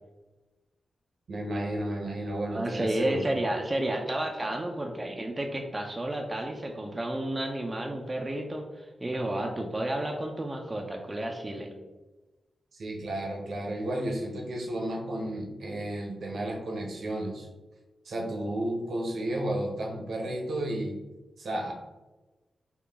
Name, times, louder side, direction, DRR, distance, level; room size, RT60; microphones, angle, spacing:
voice 1, 1.3-3.4 12.7-17.5 18.0-20.9 21.4-21.7, right 1 dB, 70° right, 0 dB, 0.7 m, -32 dB
voice 2, 2.5-11.7, right 1 dB, 20° right, 2 dB, 0.4 m, -31 dB
3.8 x 2.3 x 3.4 m, 1.1 s
wide cardioid pair, 105°, 0 cm